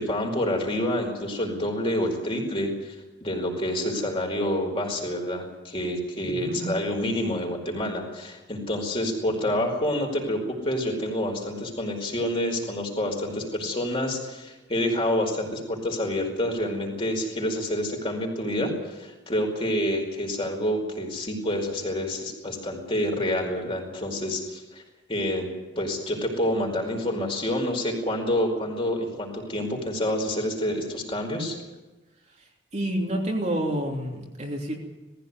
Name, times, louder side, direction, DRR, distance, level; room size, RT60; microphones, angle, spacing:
voice 1, 0.0-2.9 3.2-24.8 25.1-25.5 25.7-31.6, left 1 dB, 30° left, 1 dB, 5.0 m, -28 dB
voice 2, 6.3-6.6 32.7-34.8, right 1 dB, 40° right, 0 dB, 3.1 m, -28 dB
19.5 x 15.5 x 9.7 m, 1.1 s
head